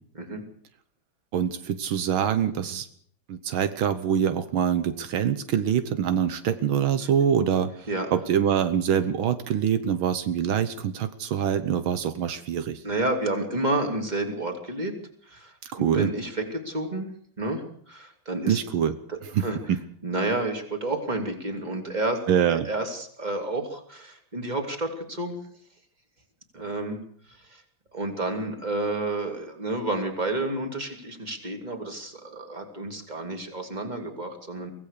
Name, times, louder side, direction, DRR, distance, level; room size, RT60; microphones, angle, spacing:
voice 1, 1.3-2.9 3.3-7.7 8.1-12.8 15.7-16.1 18.5-19.0 19.3-19.4 19.7-19.8 22.3-22.7, right 8 dB, 80° right, 11 dB, 1.8 m, -24 dB
voice 2, 12.8-14.9 15.2-17.1 17.4-18.6 19.1-19.7 20.0-22.2 22.5-25.4 26.5-27.0 27.3-27.6 27.9-34.7, right 2 dB, 20° right, 4 dB, 3.1 m, -30 dB
24.0 x 16.5 x 6.6 m, 0.62 s
omnidirectional pair, 2.2 m